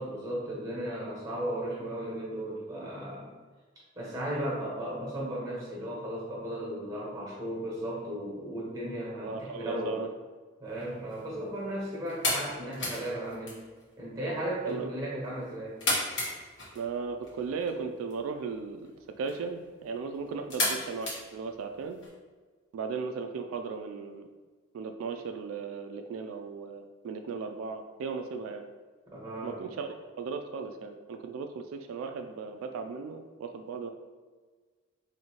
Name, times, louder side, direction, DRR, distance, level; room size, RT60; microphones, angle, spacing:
voice 1, 0.0-3.3 3.9-10.0 10.6-13.6 14.0-15.8 29.1-29.6, right 1 dB, 20° right, -5 dB, 1.2 m, -35 dB
voice 2, 9.2-10.1 14.6-14.9 16.8-18.8 19.2-22.0 22.7-24.3 24.7-28.6 29.4-33.9, right 5 dB, 90° right, 6 dB, 0.3 m, -36 dB
sound 1, 10.7-22.1, left 1 dB, 60° left, 1.2 m, -37 dB
4.2 x 2.7 x 2.9 m, 1.4 s
head